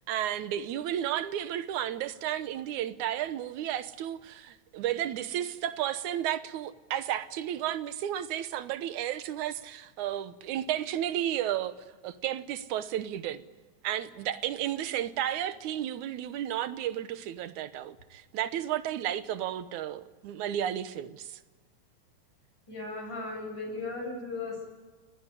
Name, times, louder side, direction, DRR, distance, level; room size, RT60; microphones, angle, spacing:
voice 1, 0.1-11.7 12.0-13.4 13.8-21.4, right 11 dB, 90° right, 2.5 m, -33 dB
voice 2, 22.7-24.7, left 3 dB, 35° left, 8.6 m, -36 dB
30.0 x 18.0 x 9.8 m
omnidirectional pair, 3.3 m